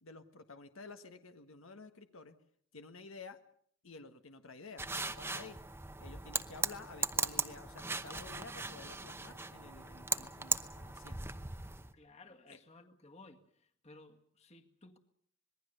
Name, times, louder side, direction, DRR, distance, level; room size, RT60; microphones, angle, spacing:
voice 1, 0.0-2.4 2.7-3.4 3.8-5.6 6.0-11.2 12.5-12.6, left 3 dB, 75° left, 7 dB, 1.5 m, -52 dB
sound 1, 4.8-11.9, right 4 dB, 10° right, 0.9 m, -38 dB
voice 2, 11.9-15.0, left 2 dB, 30° left, 5 dB, 1.9 m, -58 dB
26.0 x 21.0 x 6.8 m, 0.63 s
head